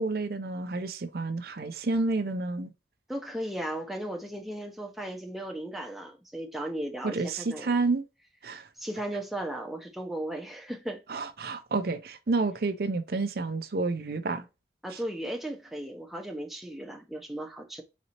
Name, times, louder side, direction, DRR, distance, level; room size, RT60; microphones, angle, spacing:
voice 1, 0.0-2.7 7.0-8.0 8.4-8.7 11.1-14.4 14.9-15.0, right 3 dB, 55° right, 0.5 m, -29 dB
voice 2, 3.1-7.8 8.8-11.0 14.8-17.8, right 1 dB, ahead, 0.6 m, -36 dB
4.2 x 4.1 x 2.8 m
head